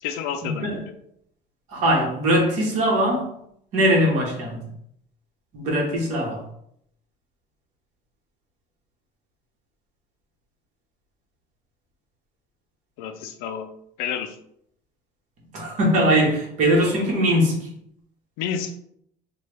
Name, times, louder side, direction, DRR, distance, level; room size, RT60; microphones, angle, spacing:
voice 1, 0.0-0.9 13.0-13.7 14.0-14.4 18.4-18.8, left 8 dB, 75° left, 8 dB, 0.4 m, -30 dB
voice 2, 1.7-3.3 3.7-4.6 5.5-6.4 15.5-17.7, equal, 50° right, -2 dB, 1.1 m, -21 dB
3.1 x 2.2 x 3.3 m, 0.72 s
cardioid pair, 165°, 16 cm